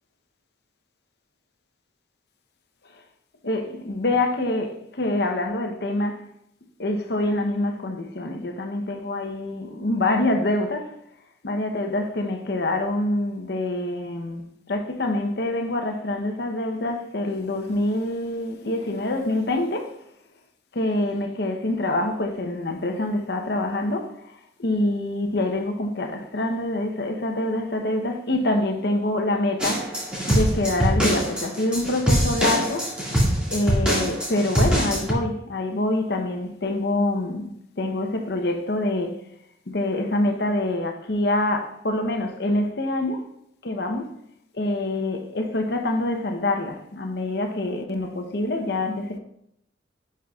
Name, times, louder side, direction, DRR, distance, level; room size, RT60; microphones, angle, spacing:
voice 1, 3.4-6.2 6.8-10.9 11.4-19.9 20.7-29.9 30.3-32.9 33.5-37.5 37.8-39.2 39.7-43.3 43.6-44.1 44.5-49.2, left 1 dB, 60° left, 0.8 m, -26 dB
sound 1, 29.6-35.1, equal, 5° right, 1.9 m, -23 dB
9.9 x 5.7 x 2.3 m
head